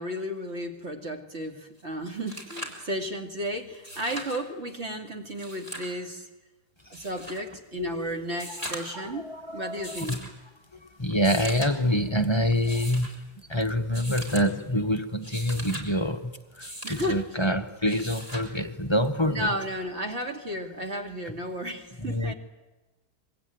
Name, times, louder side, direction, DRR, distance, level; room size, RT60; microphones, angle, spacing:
voice 1, 0.0-6.3 6.9-10.2 16.8-17.3 19.3-22.3, equal, 40° right, 4 dB, 2.6 m, -33 dB
sound 1, 1.8-1.9 2.1-2.8 3.7-4.4 5.3-6.0 6.9-7.4 8.3-9.0 9.8-10.3 11.1-11.7 12.5-13.1 13.9-14.5 15.1-15.9 16.6-17.1 17.9-18.5 19.9-20.0, equal, 20° right, 3.9 m, -39 dB
voice 2, 7.7-8.1 8.6-10.2 11.0-19.5 22.0-22.3, equal, 20° left, 7 dB, 0.8 m, -27 dB
25.0 x 22.5 x 9.2 m, 1.2 s
omnidirectional pair, 1.8 m